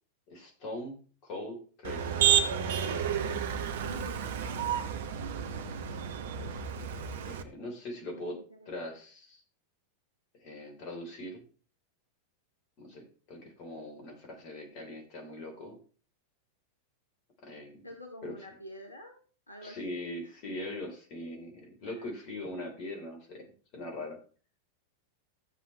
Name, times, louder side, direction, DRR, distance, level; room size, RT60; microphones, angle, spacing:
voice 1, 0.3-2.2 7.2-8.4 8.7-9.4 10.4-11.4 12.8-15.8 17.4-17.8 18.2-18.5 19.6-23.4 23.7-24.2, left 1 dB, 40° left, 2 dB, 3.7 m, -41 dB
Motor vehicle (road), 1.8-7.4, right 8 dB, 55° right, 1.0 m, -31 dB
voice 2, 3.4-5.0 5.2-5.8 8.0-8.7 17.8-19.2 19.5-20.3 21.8-22.1, left 1 dB, 80° left, 4 dB, 1.4 m, -49 dB
14.5 x 7.5 x 3.3 m, 0.40 s
figure-of-eight pair, 90°, 0 cm